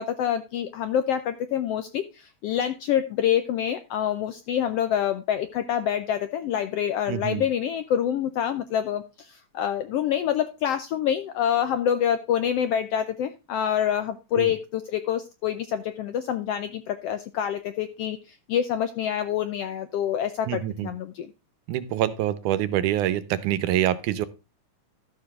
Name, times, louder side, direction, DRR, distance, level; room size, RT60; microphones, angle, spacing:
voice 1, 0.0-21.3, left 9 dB, 85° left, 11 dB, 1.4 m, -26 dB
voice 2, 7.1-7.4 14.4-14.5 20.5-20.9 21.7-24.3, right 12 dB, 85° right, 14 dB, 2.4 m, -25 dB
13.0 x 6.8 x 3.6 m, 0.29 s
omnidirectional pair, 3.5 m